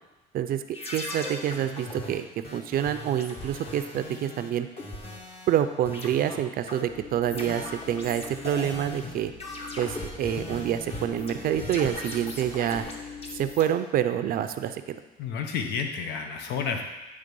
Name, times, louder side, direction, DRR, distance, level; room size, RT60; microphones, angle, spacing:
voice 1, 0.3-2.3 2.5-4.7 5.5-9.3 9.8-12.9 13.3-15.0, right 10 dB, 60° right, 9 dB, 0.5 m, -27 dB
sound 1, 0.7-5.6 5.9-13.6, left 2 dB, 35° left, 1.2 m, -38 dB
sound 2, 6.9-13.5, left 5 dB, 55° left, 1.1 m, -45 dB
voice 2, 15.2-16.8, left 6 dB, 80° left, 4 dB, 0.9 m, -30 dB
9.7 x 3.4 x 5.3 m, 1.0 s
cardioid pair, 110°, 17 cm